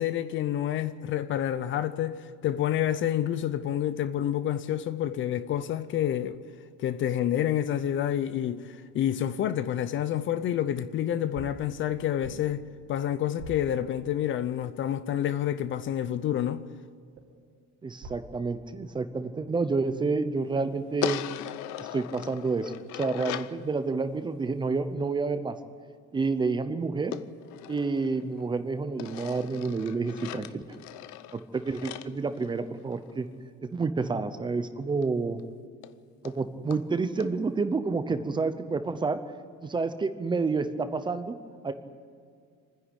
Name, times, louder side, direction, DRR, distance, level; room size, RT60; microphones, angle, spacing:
voice 1, 0.0-6.4 6.8-12.6 12.9-16.7, left 11 dB, 40° left, 0.6 m, -28 dB
sound 1, 11.3-14.5 17.2-18.7, right 2 dB, 60° right, 3.3 m, -48 dB
voice 2, 17.8-21.2 21.8-25.6 26.1-27.2 27.7-30.6 31.5-33.3 33.7-35.4 36.2-39.2 39.6-41.3 41.6-41.7, right 4 dB, 15° right, 0.7 m, -29 dB
sound 2, 21.0-23.6 27.1-28.5 29.0-33.1 35.0-35.1 35.4-35.5 35.8-35.9 36.2-36.4 36.7-36.8 37.2-37.3, left 13 dB, 70° left, 0.8 m, -38 dB
26.5 x 10.5 x 9.9 m
cardioid pair, 180°, 30 cm